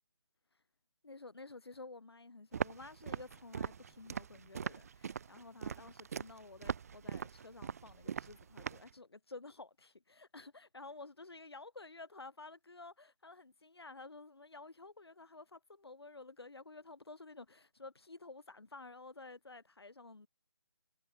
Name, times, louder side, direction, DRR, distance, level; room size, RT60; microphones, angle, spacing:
voice 1, 1.0-20.3, left 3 dB, 60° left, 7.4 m, -52 dB
Walk footsteps, 2.5-8.9, right 7 dB, 30° right, 1.6 m, -41 dB
figure-of-eight pair, 150°, 15 cm